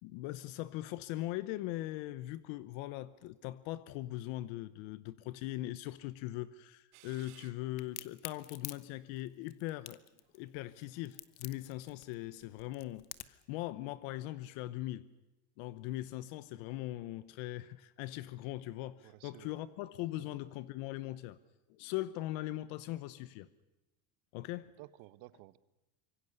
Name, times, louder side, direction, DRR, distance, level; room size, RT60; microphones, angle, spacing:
voice 1, 0.0-10.0 10.3-15.1 15.6-21.4 21.7-23.5 24.3-24.7, left 16 dB, 70° left, 16 dB, 1.0 m, -40 dB
sound 1, 6.9-8.1 8.8-8.9 9.7-12.0, right 16 dB, 90° right, 2.2 m, -63 dB
Crack, 7.8-13.5, left 17 dB, 50° left, 1.1 m, -47 dB
voice 2, 19.0-19.6 20.1-20.4 24.8-25.6, right 18 dB, 70° right, 16 dB, 1.2 m, -54 dB
26.0 x 23.5 x 6.7 m, 1.0 s
cardioid pair, 175°, 49 cm